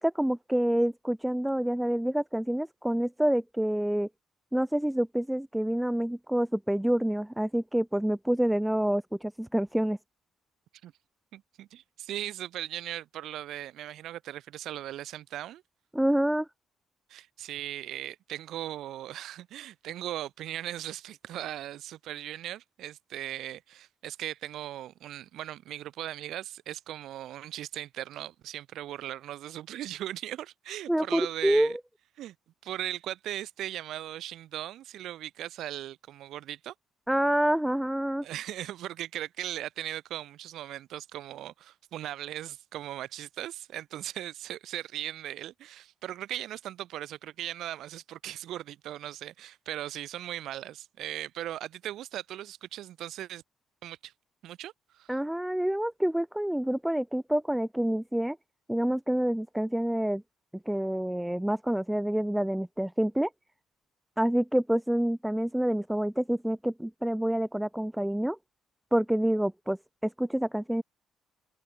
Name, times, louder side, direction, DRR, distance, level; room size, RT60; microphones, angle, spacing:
voice 1, 0.0-4.1 4.5-10.0 15.9-16.5 30.9-31.8 37.1-38.3 55.1-58.4 58.7-60.2 60.7-63.3 64.2-68.4 68.9-69.8 70.0-70.8, right 1 dB, 5° right, 0.4 m, -27 dB
voice 2, 11.3-15.6 17.1-31.8 32.2-32.3 32.6-36.7 38.2-53.4 53.8-54.1 54.4-55.2, right 13 dB, 70° right, 1.6 m, -38 dB
cardioid pair, 145°, 0 cm